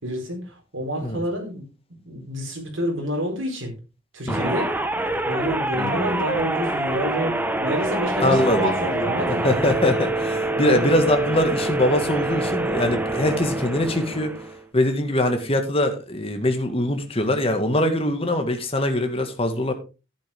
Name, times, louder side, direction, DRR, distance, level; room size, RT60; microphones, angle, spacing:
voice 1, 0.0-1.6 2.0-3.7 4.1-4.7 5.2-9.5 10.5-11.0, equal, 75° right, 1 dB, 4.7 m, -28 dB
sound 1, 4.3-14.6, right 2 dB, 10° right, 0.9 m, -26 dB
voice 2, 5.8-6.3 8.2-8.7 9.3-14.3 14.7-19.7, left 1 dB, 30° left, 5 dB, 1.8 m, -22 dB
11.5 x 9.7 x 3.6 m, 0.31 s
head